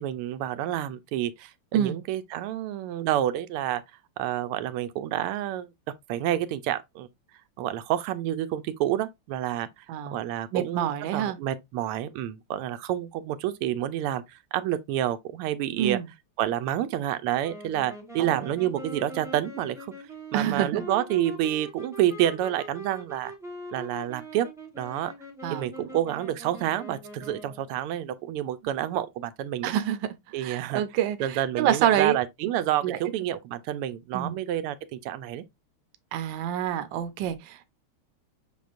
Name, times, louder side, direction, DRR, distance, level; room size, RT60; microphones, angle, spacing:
voice 1, 0.0-3.8 4.2-5.7 6.1-7.1 7.6-9.7 10.1-16.0 16.4-19.9 20.3-23.3 23.7-24.5 24.8-25.1 25.5-29.7 30.3-30.8 31.2-35.4, right 12 dB, 90° right, 1.5 m, -29 dB
voice 2, 10.5-11.4 15.8-16.1 18.2-18.5 20.3-20.8 25.4-25.7 29.6-30.1 30.4-32.2 32.8-33.0 34.1-34.4 36.1-37.7, right 11 dB, 70° right, 1.2 m, -27 dB
sound 1, 17.4-27.7, right 1 dB, 5° right, 0.6 m, -42 dB
6.1 x 3.6 x 2.5 m
omnidirectional pair, 2.4 m